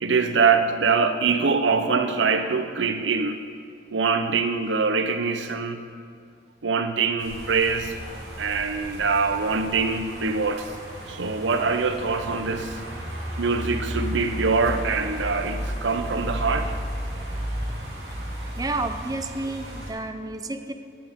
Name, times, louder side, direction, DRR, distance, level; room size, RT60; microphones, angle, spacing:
voice 1, 0.0-3.4 3.9-5.8 6.6-7.9 8.4-10.7 11.1-12.8 13.4-16.7, right 4 dB, 90° right, 8 dB, 0.7 m, -24 dB
sound 1, 7.2-19.9, equal, 70° right, 2.5 m, -34 dB
voice 2, 18.6-20.7, right 2 dB, 20° right, 7 dB, 0.5 m, -31 dB
10.5 x 10.0 x 3.6 m, 2.2 s
head